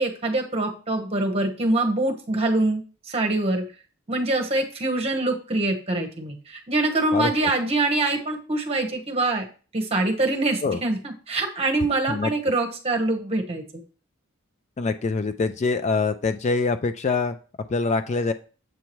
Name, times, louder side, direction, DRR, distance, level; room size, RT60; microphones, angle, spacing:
voice 1, 0.0-3.6 4.1-9.4 9.7-13.6, right 2 dB, 30° right, 2 dB, 1.1 m, -24 dB
voice 2, 14.8-17.4 17.7-18.3, left 4 dB, 30° left, 10 dB, 0.3 m, -24 dB
7.9 x 4.6 x 3.1 m, 0.37 s
head